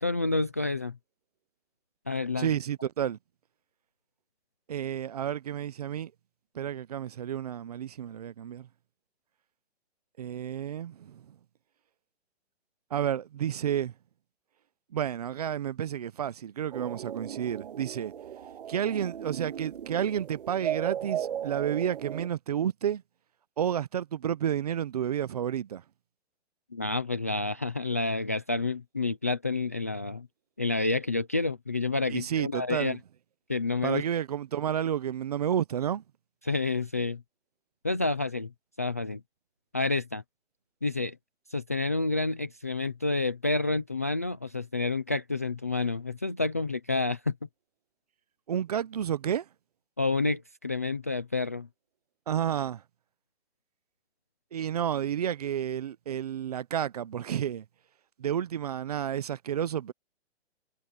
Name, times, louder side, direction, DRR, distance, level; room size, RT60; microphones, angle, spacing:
voice 1, 0.0-1.0 2.1-2.5 26.7-30.3 30.6-33.0 33.5-34.0 36.4-37.2 37.8-38.5 38.8-39.2 39.7-40.2 40.8-41.2 41.5-47.4 50.0-51.7, left 3 dB, 15° left, 0.4 m, -29 dB
voice 2, 2.4-3.2 4.7-6.1 6.5-8.7 10.2-11.2 12.9-13.9 14.9-18.1 18.7-23.0 23.6-25.8 32.1-33.0 33.8-36.0 48.5-49.4 52.3-52.8 54.5-57.6 58.2-59.9, right 9 dB, 35° right, 0.7 m, -31 dB
sound 1, 16.7-22.3, right 10 dB, 50° right, 1.8 m, -36 dB
hypercardioid pair, 165°, 33 cm